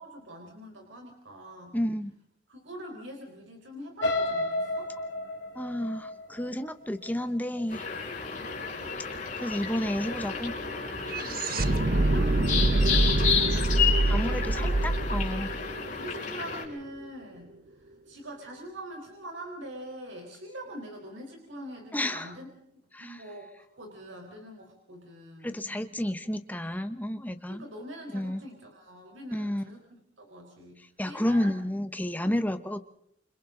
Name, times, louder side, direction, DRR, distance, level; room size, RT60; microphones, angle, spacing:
voice 1, 0.0-1.8 2.5-4.9 8.2-8.7 11.2-12.3 14.3-15.2 15.9-17.6 18.1-22.5 23.0-25.6 27.5-29.8 30.2-31.5 32.2-32.4, right 1 dB, 75° right, 1 dB, 4.4 m, -44 dB
voice 2, 1.7-2.1 5.5-7.9 9.4-10.5 14.1-15.5 21.9-22.3 22.9-23.2 25.4-27.6 28.1-28.4 29.3-29.8 30.8-32.8, left 1 dB, 10° left, 9 dB, 1.0 m, -31 dB
sound 1, 4.0-8.0 8.4-8.8 9.1-9.2, left 2 dB, 65° left, 2.7 m, -32 dB
sound 2, 7.7-16.6, left 6 dB, 40° left, 5.6 m, -31 dB
sound 3, 8.2-8.3 8.5-16.7, right 2 dB, 50° right, 0.9 m, -27 dB
28.0 x 25.5 x 3.9 m, 0.74 s
head